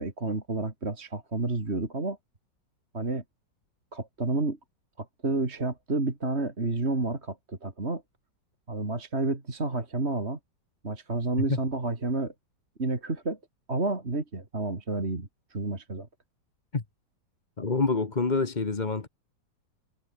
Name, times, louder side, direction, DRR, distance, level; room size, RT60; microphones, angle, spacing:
voice 1, 0.0-2.2 2.9-3.2 3.9-4.6 5.0-8.0 8.7-10.4 10.8-12.3 12.8-13.4 13.7-16.1, right 2 dB, 35° right, 3.4 m, -30 dB
voice 2, 17.6-19.1, left 4 dB, 25° left, 1.5 m, -27 dB
omnidirectional pair, 2.0 m